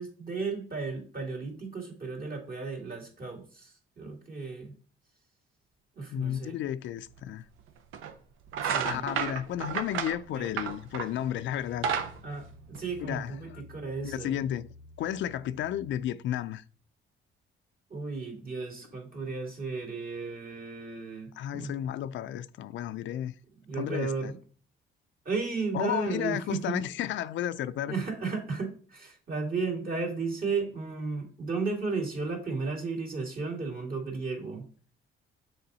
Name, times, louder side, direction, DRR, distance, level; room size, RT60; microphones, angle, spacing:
voice 1, 0.0-4.7 6.0-6.6 8.6-9.0 10.3-10.5 12.2-14.4 17.9-21.7 23.6-24.3 25.2-26.8 27.9-34.7, right 4 dB, 45° right, 2.4 m, -34 dB
voice 2, 6.1-7.5 8.8-11.9 13.0-13.6 14.0-16.6 21.4-23.3 23.8-24.3 25.7-28.0, left 11 dB, 70° left, 0.4 m, -33 dB
sound 1, 7.2-7.3 7.9-8.1 8.5-11.2 11.6-13.3, right 7 dB, 90° right, 0.7 m, -32 dB
sound 2, 10.3-16.6, left 3 dB, 25° right, 1.4 m, -54 dB
6.8 x 3.8 x 4.0 m
cardioid pair, 90°, 20 cm